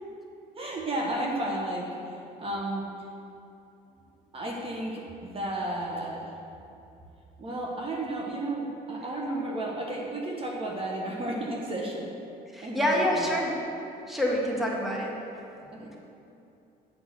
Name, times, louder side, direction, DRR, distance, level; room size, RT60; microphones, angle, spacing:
voice 1, 0.6-2.9 4.3-6.3 7.4-12.1 12.6-13.2 15.7-16.0, right 1 dB, 35° right, -2 dB, 1.1 m, -33 dB
voice 2, 12.5-13.5 14.1-15.1, equal, ahead, -3 dB, 1.5 m, -26 dB
8.4 x 5.3 x 6.5 m, 2.7 s
cardioid pair, 110°, 17 cm